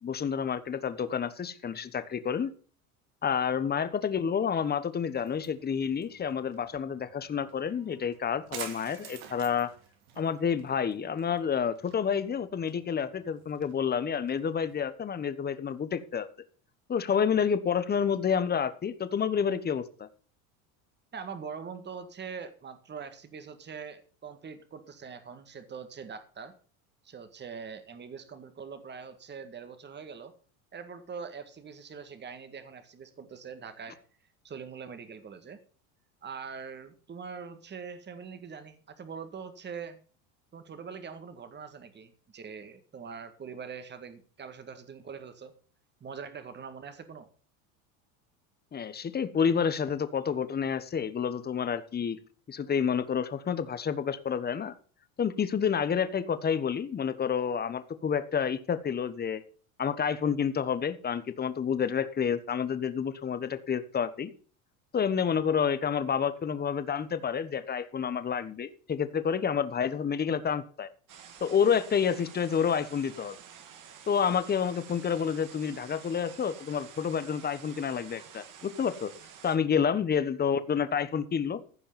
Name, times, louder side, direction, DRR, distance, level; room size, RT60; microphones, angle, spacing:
voice 1, 0.0-2.5 3.2-9.7 10.2-16.3 16.9-20.1 48.7-52.2 52.5-54.7 55.2-59.4 59.8-64.3 64.9-70.9 71.4-73.4 74.1-79.1 79.4-81.6, left 7 dB, 25° left, 13 dB, 1.2 m, -29 dB
sound 1, 5.1-14.8, right 8 dB, 85° right, 2.9 m, -49 dB
voice 2, 21.1-26.5 27.0-30.3 30.7-34.0 34.4-35.6 36.2-40.0 40.5-45.5 46.0-47.3 79.8-80.0, right 6 dB, 25° right, 10 dB, 1.9 m, -43 dB
sound 2, 71.1-79.6, right 8 dB, 45° right, 2.6 m, -50 dB
15.5 x 5.4 x 6.9 m, 0.42 s
supercardioid pair, 110°, 42 cm